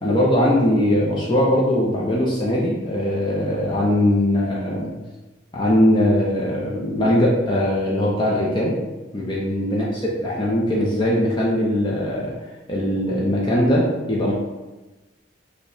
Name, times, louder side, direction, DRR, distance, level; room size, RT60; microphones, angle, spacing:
voice 1, 0.0-4.9 5.5-8.8 9.1-12.3 12.7-14.3, left 1 dB, 25° left, -4 dB, 0.5 m, -20 dB
5.0 x 2.2 x 4.8 m, 1.1 s
head